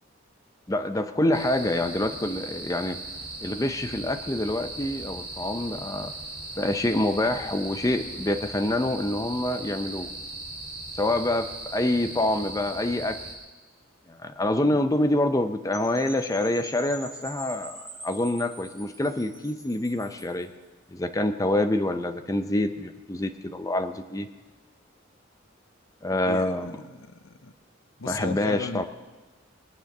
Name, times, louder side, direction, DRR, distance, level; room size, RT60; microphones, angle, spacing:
voice 1, 0.7-3.0 3.4-6.1 6.6-10.1 10.9-13.2 14.1-20.5 20.9-24.3 26.0-26.8 28.0-28.8, left 1 dB, 15° left, 7 dB, 0.6 m, -26 dB
sound 1, 1.3-13.3, right 2 dB, 60° right, 5.0 m, -38 dB
sound 2, 3.1-8.5, right 2 dB, 85° right, 2.0 m, -52 dB
Percussion / Wind chime, 15.7-20.4, right 1 dB, ahead, 4.5 m, -43 dB
voice 2, 26.2-27.5 28.0-28.8, left 4 dB, 90° left, 11 dB, 0.8 m, -36 dB
20.5 x 9.0 x 6.6 m, 1.3 s
head